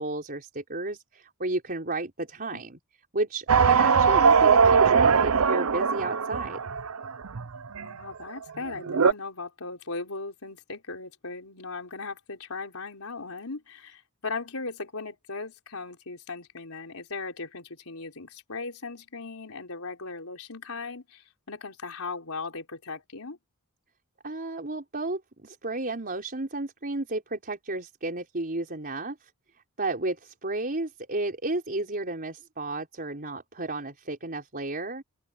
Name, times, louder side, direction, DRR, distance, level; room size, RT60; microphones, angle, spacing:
voice 1, 0.0-2.8 3.1-6.6 24.2-29.3 29.8-35.0, right 2 dB, 40° right, 4.7 m, -32 dB
sound 1, 3.5-7.9 8.4-8.5 8.7-9.1, right 6 dB, 70° right, 0.7 m, -21 dB
voice 2, 7.8-23.4, left 3 dB, 80° left, 3.9 m, -38 dB
open air
head